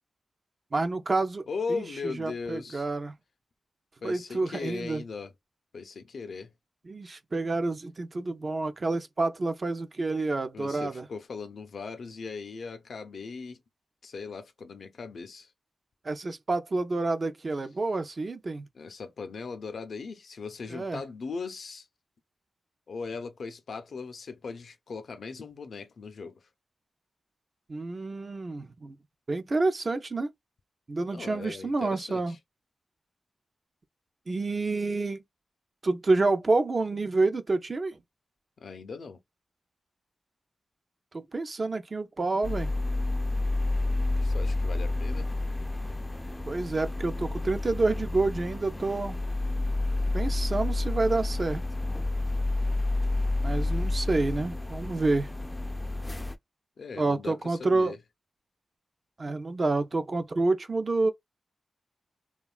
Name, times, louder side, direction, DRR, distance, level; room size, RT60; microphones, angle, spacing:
voice 1, 0.7-3.1 4.0-5.0 6.9-11.1 16.0-18.7 20.7-21.0 27.7-28.9 29.3-30.3 30.9-32.3 34.3-35.2 35.8-38.0 41.1-42.7 46.5-49.2 50.1-51.6 53.4-55.3 57.0-57.9 59.2-61.1, right 3 dB, 45° right, 0.5 m, -28 dB
voice 2, 1.5-2.9 4.0-5.3 5.7-6.5 10.5-13.6 14.0-15.5 18.7-21.9 22.9-26.4 31.1-32.4 38.6-39.2 44.2-45.3 56.8-58.0, left 4 dB, 75° left, 0.5 m, -38 dB
sound 1, 42.4-56.4, left 2 dB, 15° left, 0.3 m, -30 dB
3.0 x 2.2 x 2.3 m
cardioid pair, 70°, 0 cm